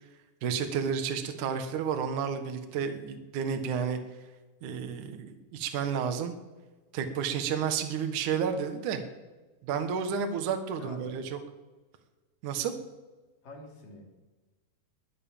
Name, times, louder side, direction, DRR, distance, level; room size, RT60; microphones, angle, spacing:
voice 1, 0.4-4.0 4.6-6.3 6.9-9.0 9.6-11.4 12.4-12.8, right 7 dB, 60° right, 7 dB, 2.1 m, -31 dB
voice 2, 10.7-11.2 13.4-14.1, left 2 dB, 50° left, 1 dB, 4.2 m, -46 dB
21.0 x 9.4 x 7.3 m, 1.3 s
omnidirectional pair, 5.4 m